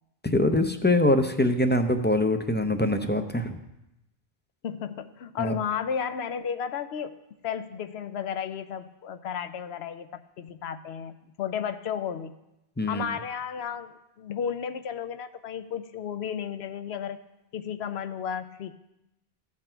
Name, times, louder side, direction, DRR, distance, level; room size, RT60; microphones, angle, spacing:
voice 1, 0.2-3.6 5.4-5.6 12.8-13.0, left 1 dB, 15° left, 7 dB, 0.4 m, -23 dB
voice 2, 4.6-10.1 10.4-12.3 12.9-17.2 17.5-18.7, left 8 dB, 85° left, 10 dB, 0.9 m, -33 dB
15.5 x 6.0 x 4.5 m, 0.91 s
omnidirectional pair, 1.0 m